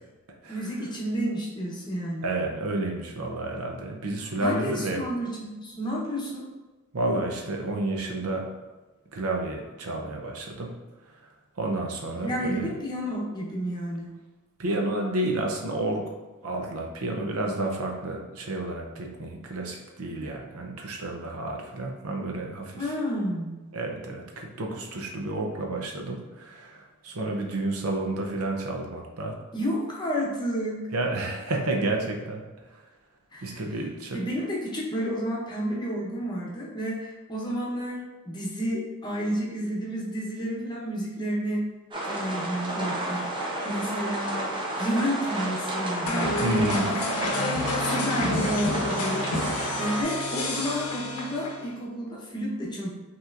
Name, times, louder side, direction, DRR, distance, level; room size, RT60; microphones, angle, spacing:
voice 1, 0.5-2.3 4.4-6.5 12.2-14.1 22.7-23.6 29.5-30.9 33.3-33.6 34.1-41.7 42.0-44.5 44.8-46.4 46.8-52.9, equal, 20° left, -4 dB, 0.9 m, -31 dB
voice 2, 2.2-5.0 6.9-8.5 9.1-10.7 11.1-11.2 11.6-12.7 14.6-16.1 16.4-22.8 23.7-29.4 30.9-32.4 32.7-32.8 33.4-34.2 46.4-46.9, right 2 dB, 70° right, 1 dB, 0.7 m, -30 dB
Rain on a caravan roof, 41.9-50.0, right 1 dB, 20° right, 0.7 m, -31 dB
sound 1, 46.1-51.7, left 2 dB, 80° left, 0.7 m, -30 dB
5.5 x 3.0 x 2.5 m, 1.2 s
head